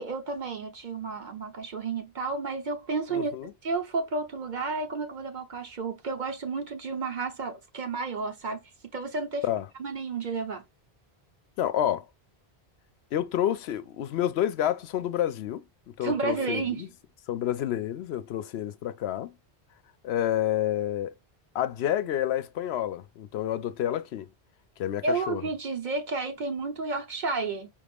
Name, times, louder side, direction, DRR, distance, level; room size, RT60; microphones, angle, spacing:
voice 1, 0.0-3.3 3.6-8.6 8.9-9.5 9.8-10.6 16.0-16.8 25.0-27.7, right 3 dB, 50° right, 1.0 m, -31 dB
voice 2, 3.1-3.5 9.4-9.7 11.6-12.0 13.1-15.6 16.0-16.9 17.3-19.3 20.0-21.1 21.5-24.3 24.8-25.4, left 11 dB, 80° left, 0.8 m, -29 dB
5.1 x 2.4 x 3.4 m
omnidirectional pair, 1.1 m